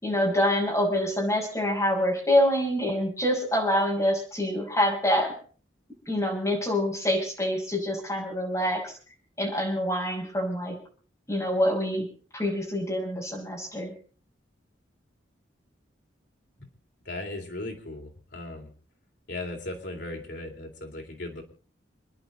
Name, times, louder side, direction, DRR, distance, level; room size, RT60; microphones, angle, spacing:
voice 1, 0.0-5.3 6.1-8.9 9.4-10.8 11.3-12.1 12.3-13.9, equal, 15° left, -1 dB, 5.8 m, -26 dB
voice 2, 17.0-18.7 19.3-21.4, left 2 dB, 65° left, 2 dB, 3.5 m, -37 dB
28.0 x 10.5 x 4.0 m, 0.42 s
head